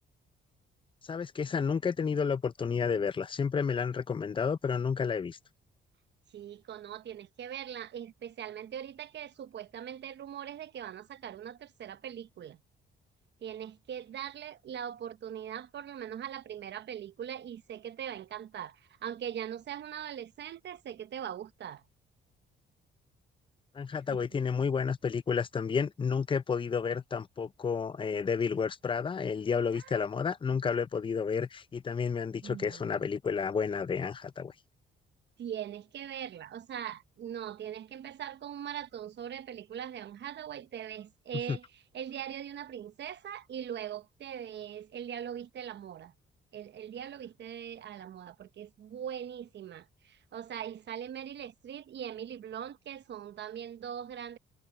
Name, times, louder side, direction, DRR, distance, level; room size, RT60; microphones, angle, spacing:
voice 1, 1.1-5.4 23.7-34.5 41.5-41.6, left 6 dB, 25° left, 0.6 m, -31 dB
voice 2, 6.3-12.6 13.4-21.8 24.1-24.3 29.7-30.1 32.4-33.1 35.4-46.1 46.5-54.4, right 9 dB, 60° right, 1.1 m, -41 dB
cardioid pair, 90°, 20 cm